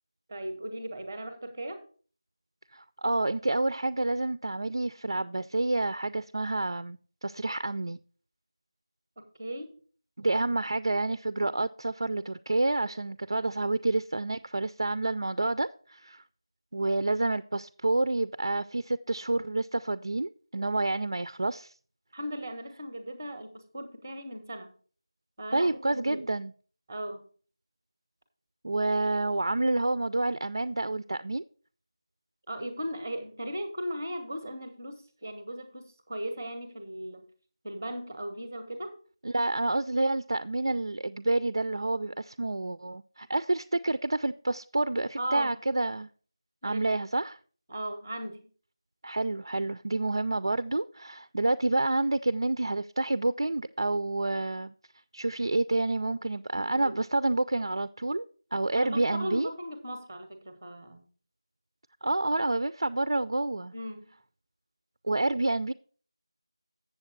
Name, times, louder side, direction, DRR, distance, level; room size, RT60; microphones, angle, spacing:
voice 1, 0.3-1.8 9.2-9.8 22.1-24.7 25.4-26.2 26.9-27.2 32.5-37.2 37.6-39.0 45.2-45.5 46.6-46.9 47.7-48.4 56.5-57.0 57.5-57.7 58.7-61.0 63.7-64.1, equal, 5° right, 0.6 m, -37 dB
voice 2, 2.7-8.0 10.2-16.2 16.7-21.7 25.5-26.5 28.6-31.4 39.2-46.1 46.6-47.4 49.0-54.7 55.1-58.2 58.5-59.5 62.0-63.7 65.0-65.7, right 2 dB, 60° right, 0.3 m, -28 dB
7.6 x 7.1 x 4.5 m
figure-of-eight pair, 175°, 3 cm